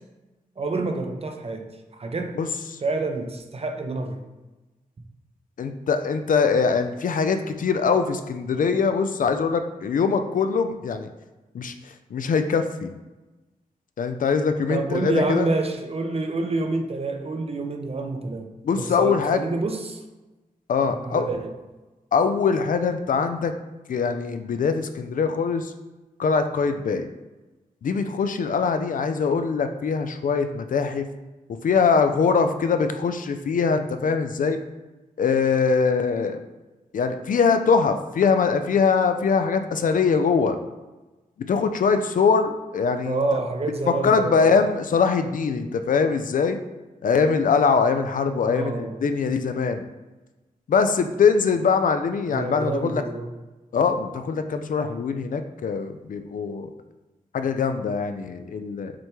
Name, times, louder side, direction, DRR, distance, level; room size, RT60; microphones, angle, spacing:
voice 1, 0.6-1.7 2.0-2.4 2.8-4.2 14.7-20.0 20.8-21.5 43.1-44.5 48.4-49.0 52.3-53.3, right 3 dB, 40° right, 5 dB, 0.5 m, -28 dB
voice 2, 5.6-11.1 11.5-12.9 14.0-15.5 18.6-19.4 20.7-21.3 22.1-23.5 23.9-25.7 26.2-27.1 27.8-31.1 31.5-34.6 35.2-36.4 36.9-40.6 41.5-43.2 43.9-46.6 47.0-49.8 50.7-53.0 53.7-56.7 57.3-58.9, left 5 dB, 65° left, 8 dB, 0.4 m, -22 dB
6.0 x 2.2 x 3.0 m, 1.1 s
cardioid pair, 45°, 15 cm